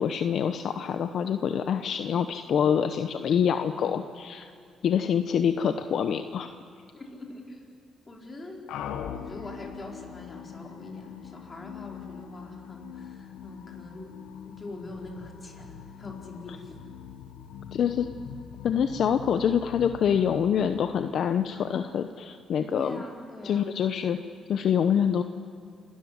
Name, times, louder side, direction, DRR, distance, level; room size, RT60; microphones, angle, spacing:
voice 1, 0.0-4.5 4.8-6.5 17.7-18.1 18.6-23.0 23.4-24.2 24.5-25.2, left 8 dB, 65° left, 8 dB, 0.8 m, -26 dB
voice 2, 6.9-7.6 8.1-8.6 9.1-14.2 14.4-16.8 22.7-23.7, left 2 dB, 30° left, 0 dB, 4.5 m, -43 dB
sound 1, 8.7-21.5, left 9 dB, 85° left, 1.3 m, -42 dB
29.0 x 13.0 x 9.6 m, 2.4 s
cardioid pair, 90°, 0 cm